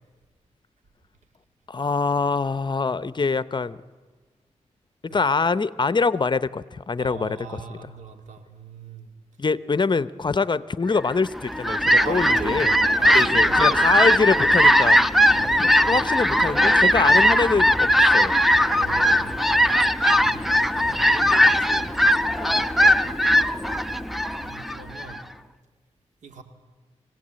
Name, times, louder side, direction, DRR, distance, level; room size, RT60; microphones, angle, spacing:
voice 1, 1.7-3.8 5.0-7.9 9.4-12.7 13.1-15.0 15.8-18.4, left 4 dB, 40° left, 16 dB, 0.7 m, -24 dB
voice 2, 7.0-9.1 11.9-13.9 15.2-16.0 18.7-20.5 20.7-21.9 22.4-23.4 24.4-25.2 26.2-26.4, right 5 dB, 85° right, 6 dB, 2.1 m, -40 dB
Fowl, 11.3-25.2, equal, ahead, 0.8 m, -19 dB
24.0 x 17.0 x 8.8 m, 1.4 s
cardioid pair, 60°, 12 cm